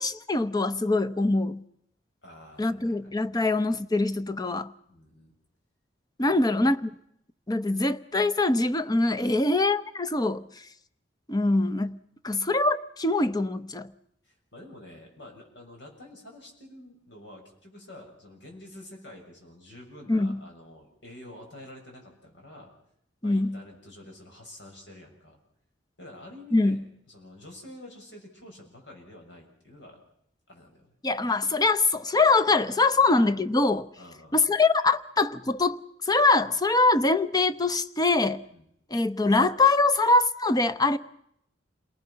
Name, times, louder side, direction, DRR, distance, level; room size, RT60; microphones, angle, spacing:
voice 1, 0.0-1.6 2.6-4.7 6.2-6.8 7.5-10.4 11.3-12.0 12.2-13.9 20.1-20.4 23.2-23.6 26.5-26.8 31.0-33.9 34.3-38.4 38.9-41.0, left 3 dB, 20° left, 0.8 m, -23 dB
voice 2, 2.2-3.1 4.9-5.3 6.2-6.6 14.2-22.7 23.2-25.4 26.0-26.8 27.1-30.0 30.5-30.9 32.9-33.1 34.0-34.4 38.5-38.7, left 1 dB, 70° left, 7.1 m, -48 dB
28.5 x 19.5 x 5.8 m
head